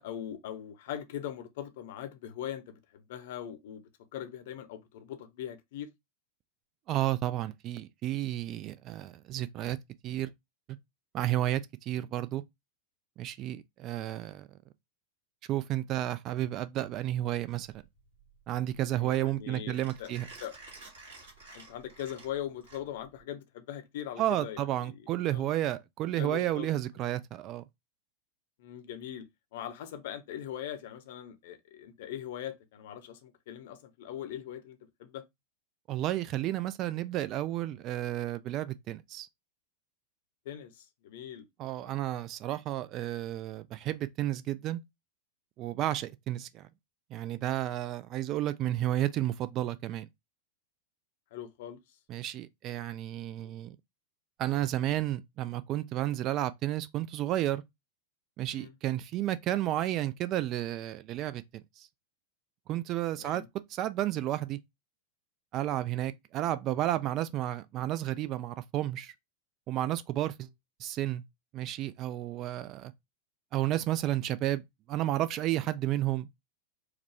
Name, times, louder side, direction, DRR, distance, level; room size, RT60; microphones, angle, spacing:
voice 1, 0.0-3.8 4.1-5.9 18.9-20.1 20.4-20.5 21.5-25.0 25.3-25.4 26.1-26.7 28.6-29.3 29.5-35.2 40.4-41.5 51.3-51.8 53.4-53.5 58.5-58.7 63.1-63.5, left 10 dB, 55° left, 0.7 m, -41 dB
voice 2, 6.9-9.8 10.0-10.3 11.1-12.4 13.2-14.5 15.5-17.7 18.5-20.3 24.2-27.6 35.9-39.3 41.6-44.8 45.6-46.7 47.1-50.1 52.1-53.8 54.4-57.6 58.4-61.4 61.8-61.9 62.7-63.4 63.7-64.6 65.5-69.1 69.7-70.5 70.8-71.2 71.5-72.9 73.5-76.3, right 13 dB, 35° right, 0.3 m, -32 dB
Mechanisms, 17.3-23.2, right 3 dB, 60° right, 2.2 m, -52 dB
4.7 x 2.2 x 3.3 m
figure-of-eight pair, 90°, 0 cm